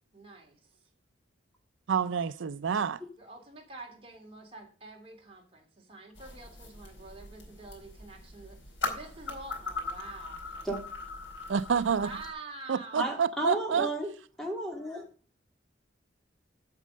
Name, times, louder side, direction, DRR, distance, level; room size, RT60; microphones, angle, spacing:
voice 1, 0.1-0.7 3.2-10.7 11.9-13.2, right 3 dB, 30° right, 3.0 m, -47 dB
voice 2, 1.9-3.0 11.5-12.1 12.7-13.9, right 6 dB, 85° right, 0.4 m, -28 dB
sound 1, 6.2-12.3, left 3 dB, 85° left, 4.1 m, -40 dB
voice 3, 13.0-14.1 14.4-15.0, right 1 dB, ahead, 2.5 m, -32 dB
8.4 x 7.6 x 6.4 m
head